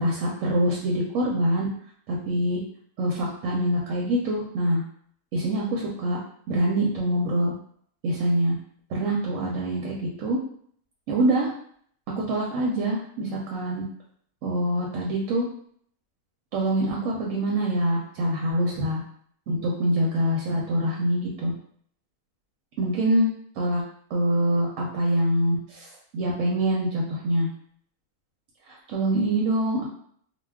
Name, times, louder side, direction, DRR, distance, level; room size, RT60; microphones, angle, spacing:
voice 1, 0.0-1.7 2.1-2.6 3.0-4.8 5.3-6.2 6.5-7.5 8.0-8.5 8.9-10.4 11.1-11.5 12.2-13.8 14.4-15.4 16.5-19.0 19.5-21.5 22.8-23.3 23.6-23.8 24.1-25.9 26.1-27.5 28.7-29.8, right 1 dB, 70° right, -2 dB, 0.9 m, -25 dB
2.3 x 2.3 x 3.4 m, 0.62 s
omnidirectional pair, 1.5 m